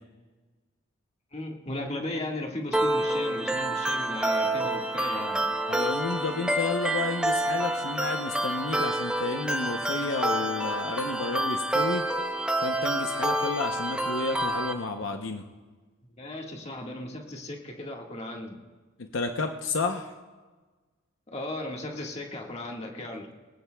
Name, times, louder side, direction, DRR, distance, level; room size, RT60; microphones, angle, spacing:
voice 1, 1.3-5.5 16.2-18.5 21.3-23.3, left 1 dB, 35° left, 0 dB, 1.6 m, -36 dB
sound 1, 2.7-14.7, right 1 dB, 5° right, 0.7 m, -28 dB
voice 2, 5.7-12.0 12.6-15.4 19.0-20.1, left 3 dB, 80° left, 5 dB, 0.7 m, -31 dB
20.0 x 18.5 x 2.3 m, 1.3 s
head